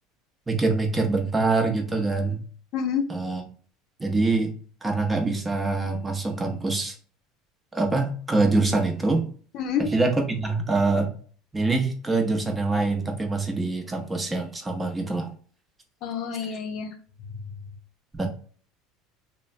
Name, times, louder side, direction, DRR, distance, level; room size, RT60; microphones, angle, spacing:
voice 1, 0.5-2.4 3.1-3.4 4.0-4.5 4.8-6.9 7.7-9.3 9.8-11.1 11.5-15.3 18.1-18.3, right 3 dB, 15° right, 4 dB, 0.7 m, -24 dB
voice 2, 2.7-3.1 9.5-9.9 16.0-16.9 17.2-17.3, left 7 dB, 55° left, 6 dB, 0.6 m, -28 dB
3.0 x 2.1 x 2.5 m, 0.43 s
supercardioid pair, 110°, 0 cm